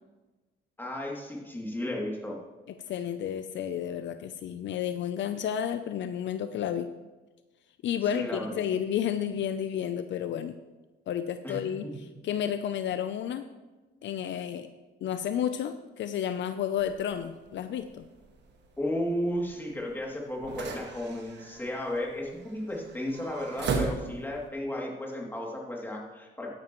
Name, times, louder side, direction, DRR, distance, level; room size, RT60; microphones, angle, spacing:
voice 1, 0.8-2.4 8.1-8.7 11.4-11.9 18.8-26.5, left 1 dB, 10° left, -2 dB, 2.6 m, -34 dB
voice 2, 2.9-6.9 7.8-10.6 11.1-11.9 12.2-13.5 14.0-14.7 15.0-18.0, left 9 dB, 70° left, 10 dB, 0.5 m, -31 dB
sound 1, 16.8-24.5, right 4 dB, 60° right, 1.6 m, -38 dB
12.5 x 10.5 x 3.1 m, 1.2 s
cardioid pair, 90°, 20 cm